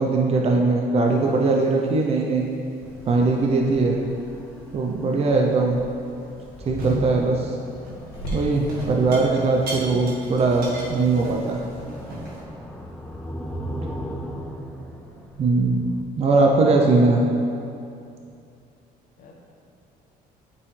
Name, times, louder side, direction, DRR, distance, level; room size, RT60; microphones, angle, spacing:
voice 1, 0.0-2.5 3.1-4.0 4.7-5.8 6.6-7.5 8.3-11.6 15.4-15.8 16.2-17.2, right 3 dB, 40° right, 0 dB, 0.6 m, -20 dB
sound 1, 1.1-1.9 2.3-2.7 3.3-3.5 6.2-6.3 6.8-7.3 7.7-12.4, right 1 dB, 65° right, 1.5 m, -37 dB
sound 2, 2.8-16.0, equal, 5° left, 0.6 m, -38 dB
Water tap faucet / Sink (filling or washing), 8.1-17.1, equal, 85° left, 1.7 m, -41 dB
voice 2, 13.6-13.7 17.5-17.8 19.2-19.3, left 4 dB, 60° left, -2 dB, 1.0 m, -50 dB
8.2 x 5.4 x 3.3 m, 2.5 s
cardioid pair, 110°, 17 cm